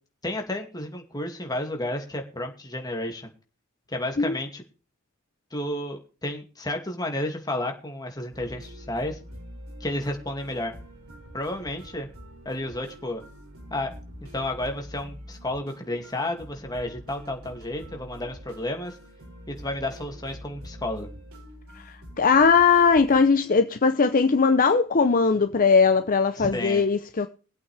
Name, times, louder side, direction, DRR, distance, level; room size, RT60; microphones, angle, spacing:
voice 1, 0.2-3.3 3.9-4.6 5.5-9.2 9.8-10.7 11.3-12.1 12.4-13.2 13.7-13.9 14.3-19.0 19.5-21.1 26.4-26.8, left 1 dB, 20° left, 2.4 m, -31 dB
sound 1, 8.3-23.3, equal, 90° right, 6.4 m, -45 dB
voice 2, 22.2-27.3, left 5 dB, 40° left, 0.7 m, -19 dB
21.5 x 8.4 x 3.4 m
head